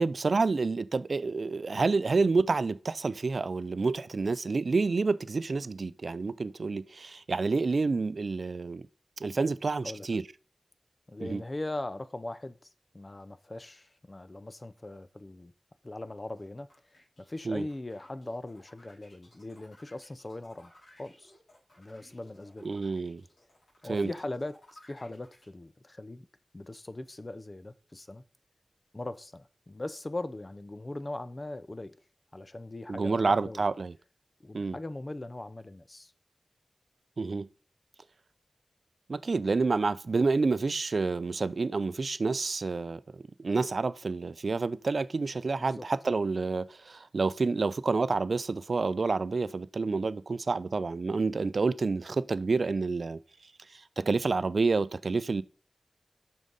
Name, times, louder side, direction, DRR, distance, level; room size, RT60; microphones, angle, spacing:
voice 1, 0.0-8.8 9.2-10.2 11.2-11.4 17.5-17.6 22.6-23.2 23.9-24.1 32.9-33.9 34.5-34.8 37.2-37.5 39.1-53.2 53.7-55.4, right 4 dB, 70° right, 0.4 m, -29 dB
voice 2, 9.8-10.2 11.1-12.7 12.9-15.5 15.8-16.7 17.3-20.7 21.0-21.3 21.8-22.7 23.8-26.3 26.5-28.2 28.9-32.0 32.3-33.6 34.4-36.1 45.6-45.9, left 2 dB, 35° left, 0.6 m, -40 dB
sound 1, 16.4-25.4, left 1 dB, 85° left, 4.5 m, -59 dB
8.9 x 6.3 x 3.9 m
wide cardioid pair, 90°, 0 cm